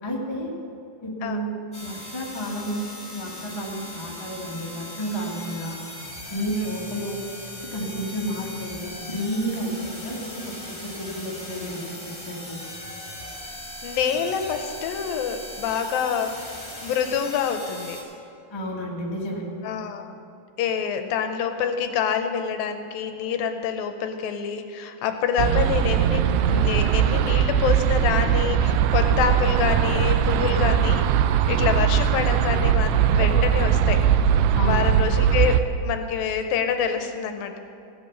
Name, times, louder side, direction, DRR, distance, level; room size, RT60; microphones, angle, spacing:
voice 1, 0.0-0.5 1.0-1.5 1.8-2.8 3.1-5.8 6.3-7.2 7.7-10.3 10.8-12.6 18.5-19.4 34.5-34.8, equal, 20° left, -4 dB, 0.7 m, -31 dB
sound 1, 1.7-18.0, left 1 dB, ahead, 2.5 m, -39 dB
voice 2, 13.8-16.5 16.8-18.0 19.6-20.1 20.6-34.0 34.6-37.6, left 7 dB, 80° left, 7 dB, 2.3 m, -27 dB
sound 2, 25.4-35.6, right 9 dB, 90° right, 1.8 m, -20 dB
16.5 x 7.9 x 6.6 m, 2.7 s
omnidirectional pair, 4.3 m